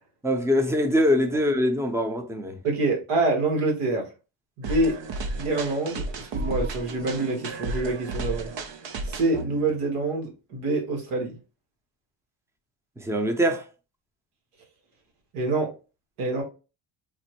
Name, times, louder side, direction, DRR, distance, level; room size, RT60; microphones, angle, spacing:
voice 1, 0.2-2.6 13.0-13.6, equal, 5° right, 0.6 m, -23 dB
voice 2, 2.6-4.1 4.6-5.0 5.4-8.5 9.1-11.4 15.3-15.7 16.2-16.4, right 2 dB, 90° right, 1.4 m, -26 dB
sound 1, 4.6-10.0, right 2 dB, 60° right, 0.7 m, -33 dB
4.2 x 2.1 x 2.9 m
cardioid pair, 85°, 50 cm